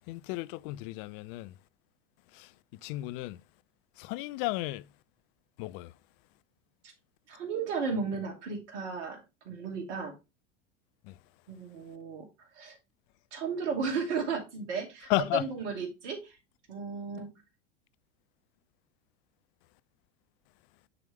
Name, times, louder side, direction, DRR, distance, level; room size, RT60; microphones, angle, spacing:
voice 1, 0.1-1.6 2.3-3.4 4.0-4.9 5.6-5.9 11.0-11.2 15.1-15.5, left 18 dB, 50° left, 0.5 m, -34 dB
voice 2, 7.3-10.1 11.5-12.3 12.6-12.8 13.3-16.3 16.7-17.4, right 5 dB, 70° right, 2.5 m, -34 dB
9.6 x 3.4 x 3.1 m
hypercardioid pair, 85°, 36 cm